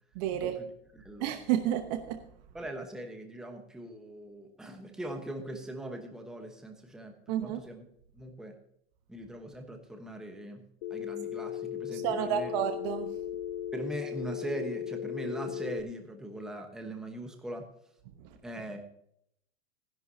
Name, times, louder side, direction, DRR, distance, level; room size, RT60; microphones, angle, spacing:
voice 1, 0.1-0.6 1.2-2.2 7.3-7.6 11.9-13.1, right 10 dB, 40° right, 1.0 m, -31 dB
voice 2, 0.9-1.3 2.5-7.1 7.4-7.8 8.1-8.5 9.1-10.6 10.9-12.5 13.7-17.6 18.4-18.8, right 1 dB, ahead, 1.0 m, -40 dB
Telephone, 10.8-15.8, left 10 dB, 40° left, 0.4 m, -37 dB
16.0 x 11.0 x 2.8 m
supercardioid pair, 155°, 32 cm